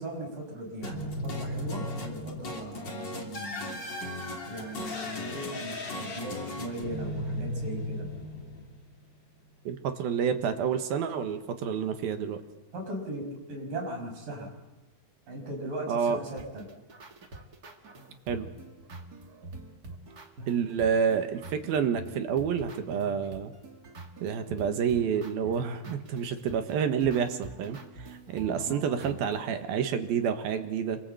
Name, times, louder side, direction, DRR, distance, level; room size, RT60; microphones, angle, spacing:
voice 1, 0.0-3.8 4.5-8.1 12.7-14.5 15.3-16.7 28.6-29.1, right 1 dB, 55° right, 2 dB, 7.3 m, -38 dB
sound 1, 0.8-9.1, left 1 dB, 30° left, 3.2 m, -36 dB
voice 2, 9.7-12.4 15.9-16.2 18.3-18.5 20.5-23.5 24.2-31.0, right 7 dB, 70° right, 8 dB, 3.1 m, -29 dB
sound 2, 16.0-29.6, right 2 dB, 35° right, 1.6 m, -46 dB
27.0 x 24.0 x 7.9 m, 1.1 s
omnidirectional pair, 4.7 m